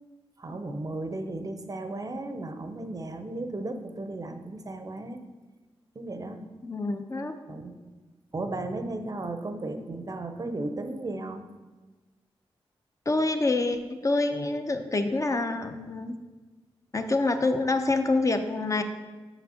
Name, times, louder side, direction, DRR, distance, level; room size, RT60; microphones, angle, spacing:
voice 1, 0.4-5.2 6.0-6.5 7.5-7.8 8.3-11.4, right 2 dB, 35° right, 8 dB, 0.6 m, -35 dB
voice 2, 6.6-7.4 13.1-16.2 16.9-18.8, left 2 dB, 30° left, 7 dB, 0.6 m, -26 dB
6.8 x 6.0 x 2.8 m, 1.3 s
cardioid pair, 55°, 10 cm